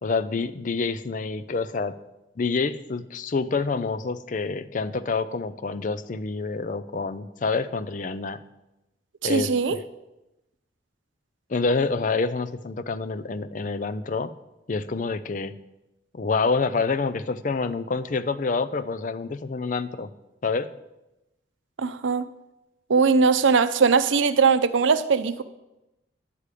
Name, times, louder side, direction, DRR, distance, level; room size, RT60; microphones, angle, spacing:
voice 1, 0.0-1.9 2.4-8.4 9.2-9.5 11.5-14.3 14.7-15.5 16.1-20.1 20.4-20.7, left 4 dB, 45° left, 11 dB, 0.5 m, -27 dB
voice 2, 9.2-9.8 21.8-22.3 22.9-25.4, right 5 dB, 90° right, 12 dB, 0.6 m, -20 dB
9.9 x 8.3 x 4.9 m, 0.95 s
head